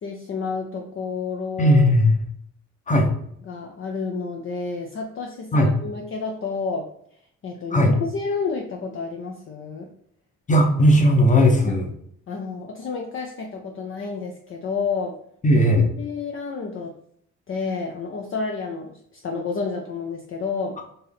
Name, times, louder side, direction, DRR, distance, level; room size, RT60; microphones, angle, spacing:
voice 1, 0.0-2.0 3.5-6.9 7.4-9.9 11.7-11.8 12.3-15.2 15.5-15.6 16.0-16.9 17.5-20.8, left 4 dB, 45° left, 1 dB, 0.6 m, -30 dB
voice 2, 1.6-2.2 2.9-3.1 5.5-5.7 7.7-7.9 10.5-11.9 15.4-15.9, equal, 25° left, 3 dB, 0.9 m, -17 dB
4.3 x 2.7 x 3.5 m, 0.68 s
cardioid pair, 90°, 30 cm